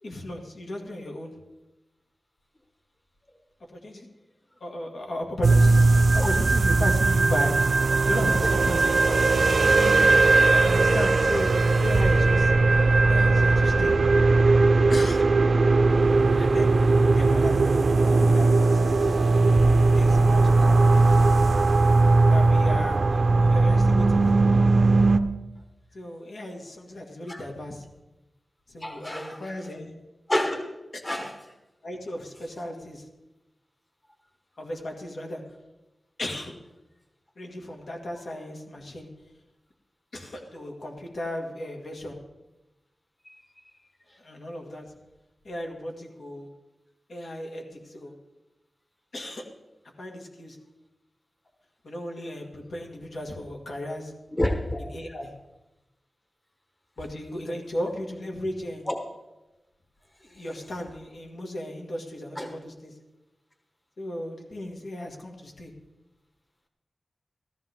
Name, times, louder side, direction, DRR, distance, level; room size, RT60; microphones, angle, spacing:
voice 1, 0.0-1.4 3.7-4.1 4.6-5.8 6.1-7.6 8.1-9.2 10.3-12.5 13.1-13.9 14.9-15.3 16.4-16.7 17.1-19.3 19.9-20.8 22.2-24.4 25.9-27.8 28.7-30.0 30.9-31.0 31.8-33.1 34.6-35.4 36.2-36.6 37.4-39.1 40.1-42.2 44.2-44.9 45.4-46.5 47.1-48.1 49.1-49.5 50.0-50.6 51.8-54.1 54.8-55.3 57.0-58.8 60.2-62.9 64.0-65.7, left 1 dB, 70° left, 1 dB, 1.9 m, -35 dB
sound 1, 5.4-25.2, right 3 dB, 55° right, 0.5 m, -19 dB
voice 2, 28.8-29.4 30.3-30.6 31.0-31.3 54.4-54.8 58.9-59.0 62.4-62.5, left 1 dB, 20° left, 4 dB, 1.2 m, -27 dB
14.0 x 14.0 x 3.6 m, 1.0 s
wide cardioid pair, 105°, 0 cm